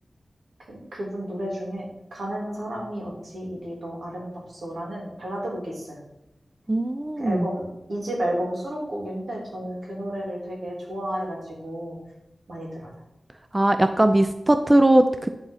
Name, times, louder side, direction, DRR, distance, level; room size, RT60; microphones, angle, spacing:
voice 1, 0.7-4.3 4.6-6.0 7.2-12.0 12.5-12.9, equal, 85° right, -3 dB, 3.1 m, -32 dB
voice 2, 6.7-7.5 13.5-15.3, right 1 dB, 20° right, 8 dB, 0.5 m, -19 dB
11.0 x 4.3 x 5.5 m, 0.92 s
wide cardioid pair, 100°, 0 cm